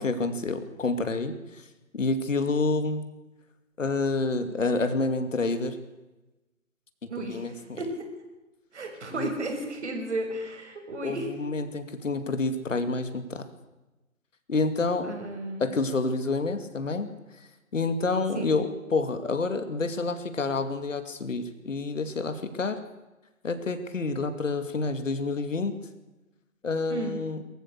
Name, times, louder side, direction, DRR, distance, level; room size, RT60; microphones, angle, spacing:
voice 1, 0.0-1.6 1.9-3.1 3.8-5.8 7.2-7.8 9.1-9.3 11.0-13.4 14.5-15.2 15.6-17.1 17.7-22.8 23.4-25.8 26.6-27.4, left 3 dB, 65° left, 9 dB, 2.6 m, -28 dB
voice 2, 7.1-8.0 8.7-11.3 15.0-15.7 18.3-18.5 26.9-27.2, right 2 dB, 55° right, 3 dB, 6.7 m, -34 dB
23.0 x 15.0 x 8.2 m, 1.1 s
figure-of-eight pair, 145°, 41 cm